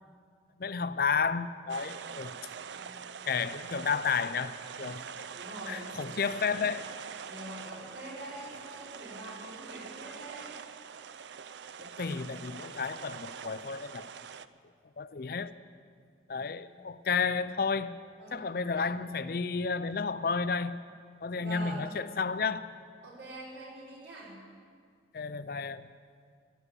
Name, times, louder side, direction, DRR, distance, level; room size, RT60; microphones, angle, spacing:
voice 1, 0.6-2.3 3.3-5.3 5.7-6.9 11.8-14.1 15.0-15.5 16.3-18.0 18.3-20.8 21.2-22.7 25.1-25.9, left 5 dB, 50° left, 14 dB, 0.5 m, -32 dB
sound 1, 1.7-14.5, right 7 dB, 70° right, 0.5 m, -44 dB
voice 2, 2.7-3.1 5.3-5.9 6.3-6.6 7.2-10.6 16.3-16.6 18.2-18.4 18.8-18.9 21.3-21.9 23.0-24.4, right 1 dB, 90° right, -6 dB, 5.4 m, -45 dB
15.0 x 11.0 x 8.3 m, 2.1 s
head